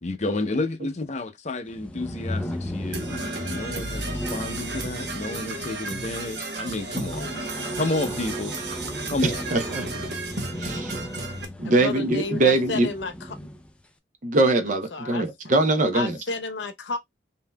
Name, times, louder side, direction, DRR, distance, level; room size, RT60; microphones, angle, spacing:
voice 1, 0.0-7.5 7.8-8.5 9.1-9.5, left 2 dB, 40° left, 0.7 m, -30 dB
sound 1, 1.7-13.7, equal, 5° left, 0.4 m, -35 dB
Percussion / Brass instrument, 2.9-11.4, right 3 dB, 70° right, 0.9 m, -34 dB
voice 2, 9.2-9.9 10.6-10.9 11.6-12.9 14.2-16.2, right 2 dB, 45° right, 0.7 m, -22 dB
voice 3, 11.6-13.1 14.9-15.3 15.9-17.0, left 3 dB, 85° left, 0.7 m, -31 dB
5.5 x 2.7 x 2.2 m
head